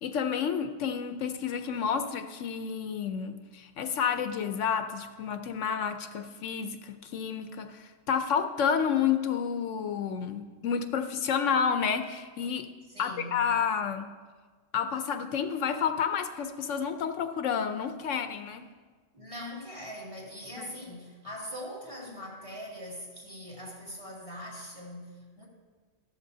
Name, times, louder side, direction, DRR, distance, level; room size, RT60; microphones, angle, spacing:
voice 1, 0.0-12.7 13.0-14.1 14.7-18.7 20.6-20.7, left 7 dB, 75° left, 8 dB, 1.0 m, -30 dB
voice 2, 12.9-13.6 19.1-25.5, equal, 25° right, -4 dB, 2.6 m, -42 dB
13.0 x 13.0 x 2.7 m, 1.4 s
omnidirectional pair, 1.3 m